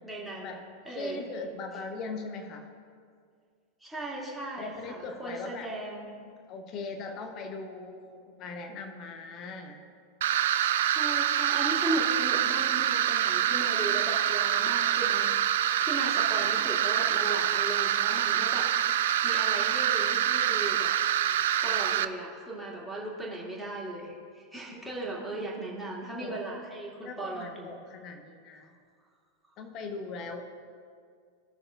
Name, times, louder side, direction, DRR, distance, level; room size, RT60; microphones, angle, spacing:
voice 1, 0.0-0.6 0.9-1.2 3.8-6.3 10.9-15.3 15.8-18.7 19.2-20.9 21.6-27.7, right 1 dB, 5° right, -5 dB, 2.1 m, -37 dB
voice 2, 0.9-2.7 4.6-5.7 6.5-9.8 26.2-26.4 27.0-28.7 29.6-30.4, left 3 dB, 35° left, 5 dB, 0.9 m, -40 dB
sound 1, 10.2-22.0, right 11 dB, 55° right, 0.3 m, -26 dB
16.5 x 6.4 x 2.5 m, 2.1 s
figure-of-eight pair, 90°, 0 cm